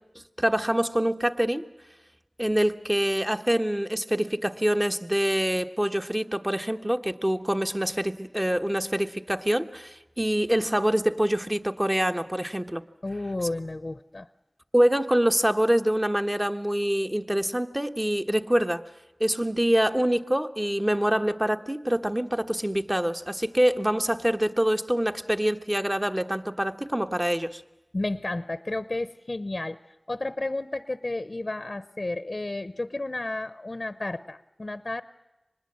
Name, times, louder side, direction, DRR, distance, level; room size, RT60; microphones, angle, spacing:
voice 1, 0.4-1.6 2.4-12.8 14.7-18.8 19.2-27.6, equal, 20° right, 7 dB, 1.3 m, -25 dB
voice 2, 13.0-14.3 27.9-29.8 30.1-35.0, left 2 dB, 60° left, 15 dB, 0.7 m, -32 dB
25.0 x 20.5 x 7.6 m, 0.99 s
wide cardioid pair, 40°, 0 cm